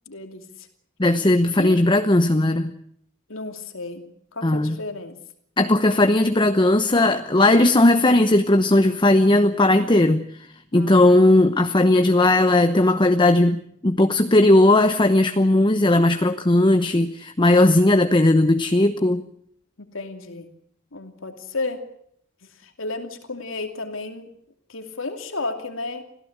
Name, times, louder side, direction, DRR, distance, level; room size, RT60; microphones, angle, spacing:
voice 1, 0.1-0.7 1.6-1.8 3.3-4.0 4.3-5.2 10.7-11.4 19.8-20.5 20.9-21.8 22.6-24.3 24.7-26.0, left 3 dB, 90° left, 6 dB, 2.8 m, -33 dB
voice 2, 1.0-2.7 4.4-4.7 5.6-10.2 10.7-19.2, left 1 dB, 25° left, 8 dB, 1.0 m, -17 dB
26.0 x 16.5 x 8.1 m, 0.69 s
head